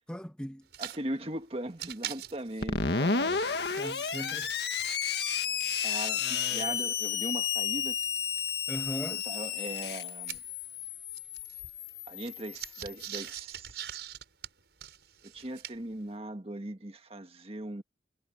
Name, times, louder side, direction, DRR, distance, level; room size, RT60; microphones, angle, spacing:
voice 1, 0.1-0.7 3.8-4.6 6.2-6.8 8.7-9.2, equal, 5° left, 1.5 m, -39 dB
sound 1, 0.7-1.0 1.3-1.4 1.7-4.5 4.8-8.5 9.1-10.8 11.1-15.9, right 11 dB, 75° right, 5.6 m, -44 dB
voice 2, 0.8-3.4 5.8-8.0 9.2-10.4 12.1-13.8 15.2-17.8, right 1 dB, 35° right, 1.7 m, -39 dB
Screech, 2.6-13.1, left 6 dB, 70° left, 1.8 m, -32 dB
head